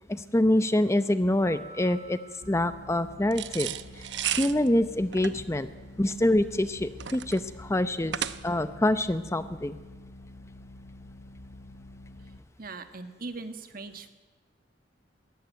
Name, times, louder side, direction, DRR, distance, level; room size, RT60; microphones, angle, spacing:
voice 1, 0.1-2.2 2.5-5.7 6.0-8.2 8.4-9.8, left 1 dB, 15° left, 12 dB, 0.7 m, -26 dB
sound 1, 1.5-4.0, right 2 dB, 45° left, 1.5 m, -51 dB
sound 2, 2.4-12.4, left 1 dB, 80° left, 1.2 m, -48 dB
sound 3, 3.3-8.7, right 10 dB, 70° right, 0.8 m, -35 dB
voice 2, 12.6-14.1, right 3 dB, 50° right, 8 dB, 1.7 m, -40 dB
21.5 x 17.5 x 9.4 m, 1.3 s
head